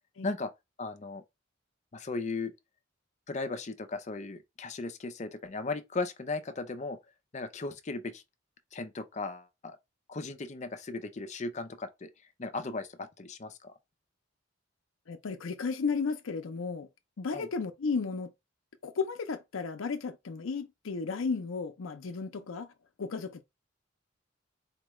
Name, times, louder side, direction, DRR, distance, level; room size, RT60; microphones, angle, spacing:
voice 1, 0.8-1.2 1.9-2.5 3.3-7.0 7.3-8.2 8.7-9.8 10.1-12.1 12.4-13.7 17.3-17.5, left 3 dB, 35° left, 0.5 m, -36 dB
voice 2, 15.1-16.9 17.2-18.3 18.8-22.7 23.0-23.4, left 4 dB, 85° left, 0.5 m, -34 dB
4.4 x 2.3 x 3.1 m
head